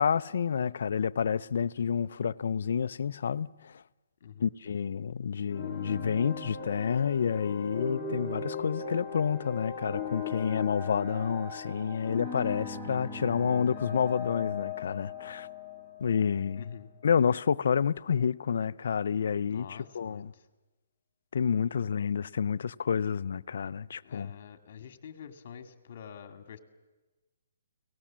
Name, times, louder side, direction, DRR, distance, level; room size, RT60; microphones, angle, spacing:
voice 1, 0.0-3.8 4.4-15.5 16.0-16.7 17.0-20.3 21.3-24.3, left 7 dB, 60° left, 0.7 m, -29 dB
voice 2, 4.2-4.5 16.5-16.9 19.5-20.3 24.0-26.6, left 7 dB, 45° left, 2.3 m, -46 dB
sound 1, 5.5-16.7, left 5 dB, 5° left, 6.9 m, -38 dB
29.5 x 18.5 x 7.5 m
hypercardioid pair, 160°, 0 cm